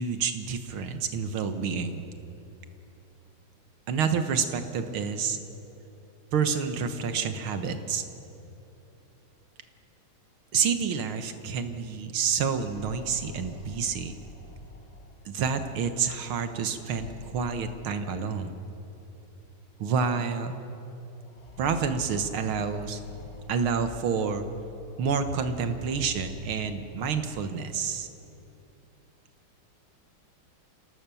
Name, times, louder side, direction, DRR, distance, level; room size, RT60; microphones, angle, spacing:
voice 1, 0.0-2.0 3.9-5.4 6.3-8.0 10.5-14.2 15.3-18.6 19.8-20.5 21.6-23.0 23.5-24.4 25.0-28.1, right 6 dB, 90° right, 8 dB, 2.1 m, -28 dB
sound 1, 12.6-15.4 16.7-18.4 19.4-19.5 19.9-20.0 21.3-24.4 24.9-27.5, left 2 dB, 35° left, 1.8 m, -46 dB
26.0 x 17.5 x 7.0 m, 2.9 s
omnidirectional pair, 2.2 m